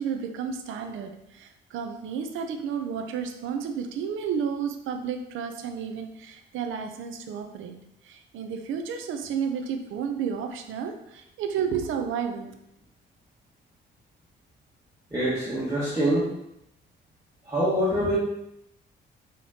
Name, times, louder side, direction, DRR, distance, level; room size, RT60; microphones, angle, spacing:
voice 1, 0.0-7.7 8.1-12.5, right 7 dB, 80° right, 6 dB, 0.6 m, -32 dB
voice 2, 15.1-16.2 17.5-18.2, equal, 15° right, -10 dB, 1.6 m, -24 dB
5.7 x 3.1 x 2.8 m, 0.80 s
cardioid pair, 90°, 20 cm